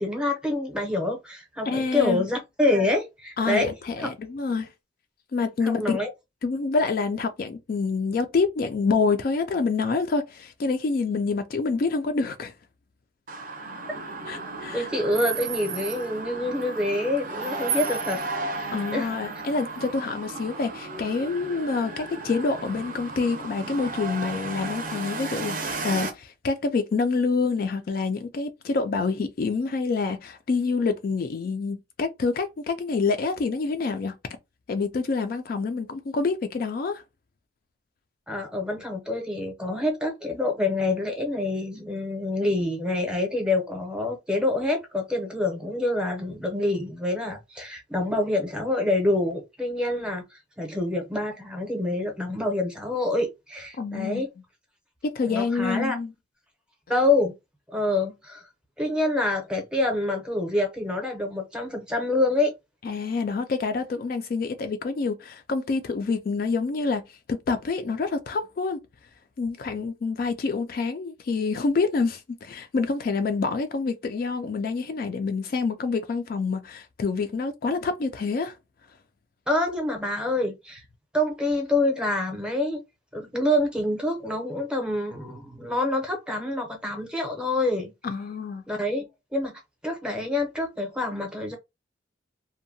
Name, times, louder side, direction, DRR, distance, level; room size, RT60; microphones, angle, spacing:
voice 1, 0.0-3.7 5.6-6.1 14.7-18.2 18.9-19.4 38.3-54.3 55.3-56.0 56.9-57.3 57.7-58.5 58.8-62.5 79.5-80.8 81.1-82.8 83.1-87.9 88.7-91.6, left 2 dB, 5° right, 0.6 m, -26 dB
voice 2, 1.7-2.2 3.4-4.7 5.3-6.0 6.4-12.5 14.3-14.9 18.7-34.2 34.7-37.0 53.8-54.2 55.0-56.1 62.8-67.0 67.3-68.8 69.4-78.6 88.0-88.6, left 4 dB, 50° left, 0.3 m, -27 dB
sound 1, 13.3-26.1, right 4 dB, 45° right, 0.5 m, -34 dB
2.7 x 2.1 x 2.6 m
head